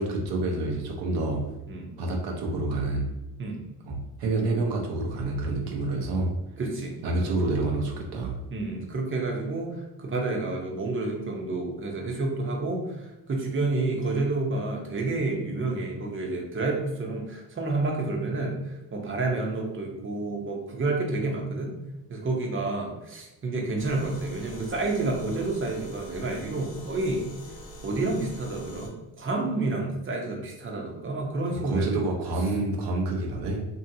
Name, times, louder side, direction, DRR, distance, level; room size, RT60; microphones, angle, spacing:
voice 1, 0.0-1.4 2.0-3.1 3.9-6.3 7.0-8.4 31.6-33.6, right 2 dB, 75° right, 0 dB, 0.8 m, -28 dB
voice 2, 6.6-7.3 8.5-21.7 22.1-27.3 27.8-32.0, right 2 dB, 30° right, 0 dB, 0.7 m, -29 dB
sound 1, 23.8-28.9, equal, 85° left, 0.8 m, -44 dB
2.7 x 2.7 x 2.7 m, 0.98 s
cardioid pair, 100°, 42 cm